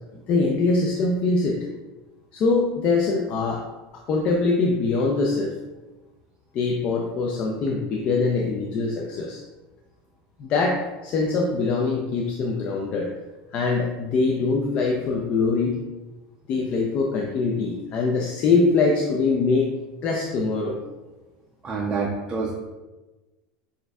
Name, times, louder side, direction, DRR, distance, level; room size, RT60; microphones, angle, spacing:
voice 1, 0.3-1.6 2.3-3.6 4.1-5.5 6.5-9.4 10.4-13.1 13.5-15.8 16.5-19.7 20.0-20.8, left 3 dB, 35° left, 0 dB, 0.4 m, -23 dB
voice 2, 21.6-22.5, right 4 dB, 20° right, -2 dB, 0.4 m, -27 dB
6.1 x 2.6 x 2.3 m, 1.1 s
supercardioid pair, 150°, 3 cm